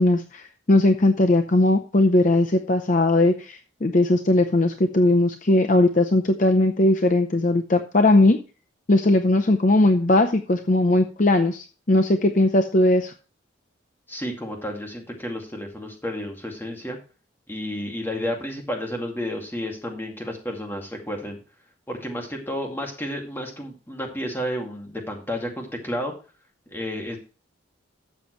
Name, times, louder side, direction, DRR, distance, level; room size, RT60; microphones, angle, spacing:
voice 1, 0.0-8.4 8.9-13.1, left 2 dB, 40° left, 7 dB, 0.7 m, -19 dB
voice 2, 14.1-17.0 17.5-21.4 21.9-26.1 26.7-27.2, equal, 10° left, 1 dB, 2.2 m, -31 dB
12.5 x 7.7 x 3.1 m, 0.34 s
head